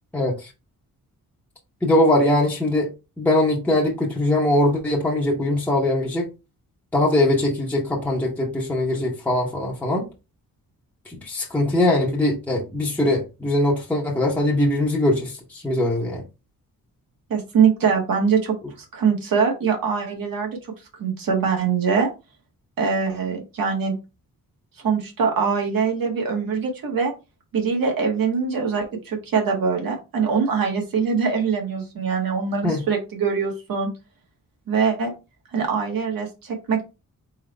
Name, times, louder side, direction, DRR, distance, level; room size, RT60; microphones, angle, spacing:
voice 1, 0.1-0.5 1.8-2.9 3.2-6.3 6.9-10.1 11.1-16.2 32.6-32.8, left 1 dB, 5° left, 0.8 m, -21 dB
voice 2, 17.3-18.5 18.9-20.6 21.0-22.1 22.8-23.9 24.8-27.1 27.5-33.9 34.7-35.1 35.5-36.8, right 6 dB, 75° right, 1.6 m, -23 dB
4.3 x 3.8 x 3.2 m
wide cardioid pair, 175°, 35 cm